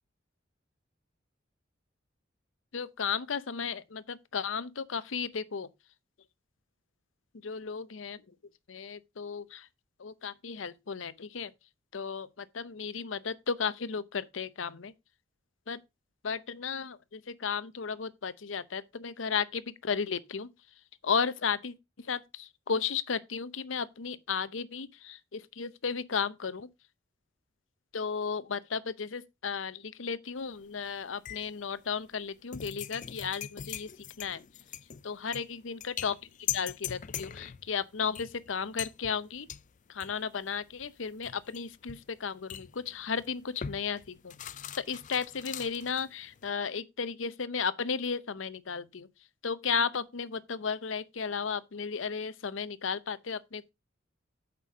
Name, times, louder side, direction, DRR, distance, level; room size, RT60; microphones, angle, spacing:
voice 1, 2.7-5.7 7.4-8.2 8.7-9.6 10.0-11.5 11.9-14.9 15.7-15.8 16.2-20.5 21.0-21.7 22.1-26.7 27.9-33.9 34.2-34.4 35.0-36.2 36.5-39.5 39.9-44.3 44.7-49.1 49.4-53.6, left 6 dB, 90° left, 0.7 m, -34 dB
sound 1, 30.4-30.9 31.2-46.5, left 9 dB, 40° left, 0.5 m, -42 dB
8.5 x 6.0 x 4.8 m
head